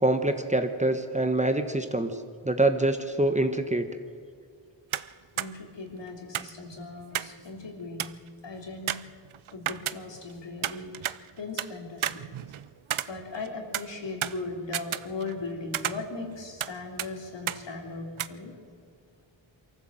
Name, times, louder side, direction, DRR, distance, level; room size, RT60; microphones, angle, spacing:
voice 1, 0.0-2.1 2.4-3.8, right 2 dB, 15° right, 7 dB, 1.1 m, -25 dB
sound 1, 4.9-5.1 5.4-5.5 6.3-7.4 7.7-7.8 8.0-8.3 8.9-10.3 10.6-11.7 12.0-13.5 13.7-15.4 15.7-16.7 17.0-17.1 17.5-17.6 18.2-18.3, right 11 dB, 80° right, 0.7 m, -32 dB
voice 2, 5.4-8.1 8.4-9.0 9.5-12.1 13.1-18.5, left 3 dB, 60° left, 1 dB, 3.7 m, -38 dB
23.5 x 14.5 x 7.7 m, 2.1 s
wide cardioid pair, 95°, 47 cm